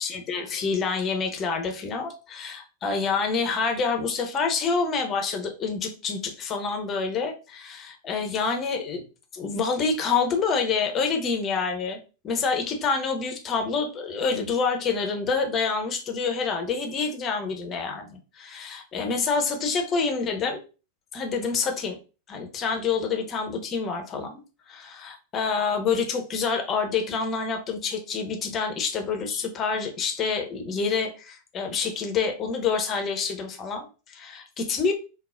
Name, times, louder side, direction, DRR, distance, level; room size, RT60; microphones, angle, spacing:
voice 1, 0.0-9.0 9.3-12.0 12.2-20.6 21.1-22.0 22.3-24.4 24.7-34.9, left 5 dB, 30° left, 5 dB, 0.8 m, -27 dB
3.8 x 2.3 x 2.5 m, 0.33 s
figure-of-eight pair, 90°, 0 cm